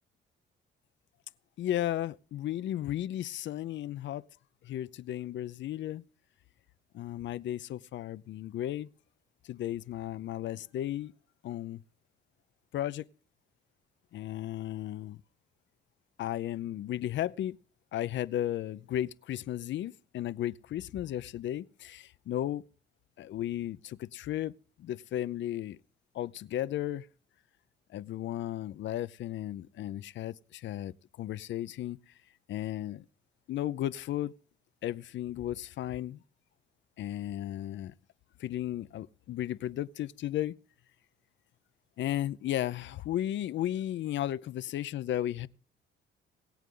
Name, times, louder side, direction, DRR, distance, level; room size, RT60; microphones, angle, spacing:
voice 1, 1.6-4.3 4.6-6.0 6.9-8.9 9.4-11.1 11.4-11.8 12.7-13.0 14.1-15.2 16.2-17.6 17.9-22.6 23.2-24.5 24.8-25.8 26.1-27.1 27.9-32.0 32.5-33.0 33.5-34.3 34.8-36.2 37.0-37.9 38.4-40.5 42.0-45.5, left 12 dB, 70° left, 0.6 m, -34 dB
22.5 x 8.2 x 3.8 m
cardioid pair, 90°, 20 cm